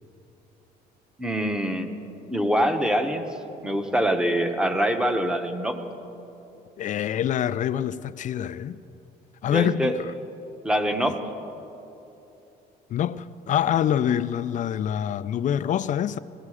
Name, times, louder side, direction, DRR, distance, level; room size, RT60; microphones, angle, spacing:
voice 1, 1.2-1.9 2.3-3.3 3.6-5.8 9.5-9.9 10.6-11.2, equal, 5° right, 1.0 m, -24 dB
voice 2, 6.8-8.8 9.4-10.1 12.9-16.2, left 10 dB, 50° left, 0.4 m, -25 dB
15.5 x 15.5 x 4.9 m
cardioid pair, 110°, 17 cm